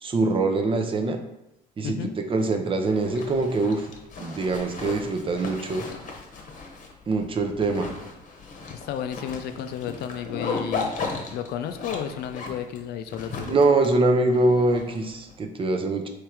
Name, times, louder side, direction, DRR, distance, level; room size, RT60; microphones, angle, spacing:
voice 1, 0.0-1.2 1.8-2.0 2.3-3.9 4.2-5.9 7.1-7.9 13.4-16.1, right 2 dB, 30° right, 5 dB, 0.6 m, -23 dB
Zipper (clothing), 2.8-15.3, left 4 dB, 50° left, 0.9 m, -36 dB
voice 2, 8.7-11.0 11.3-13.6, left 9 dB, 70° left, 8 dB, 0.4 m, -32 dB
3.6 x 3.2 x 4.5 m, 0.87 s
cardioid pair, 110°, 17 cm